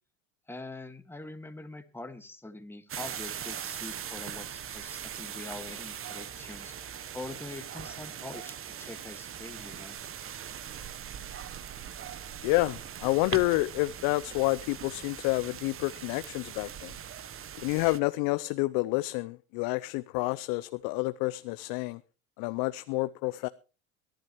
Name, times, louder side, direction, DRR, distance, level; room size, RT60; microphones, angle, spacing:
voice 1, 0.5-10.0, left 2 dB, 5° left, 1.8 m, -44 dB
sound 1, 2.9-18.0, right 9 dB, 35° right, 1.1 m, -41 dB
voice 2, 12.4-16.9 17.6-22.0 22.4-23.5, left 22 dB, 60° left, 0.7 m, -29 dB
23.0 x 12.0 x 3.1 m
hypercardioid pair, 70°, 38 cm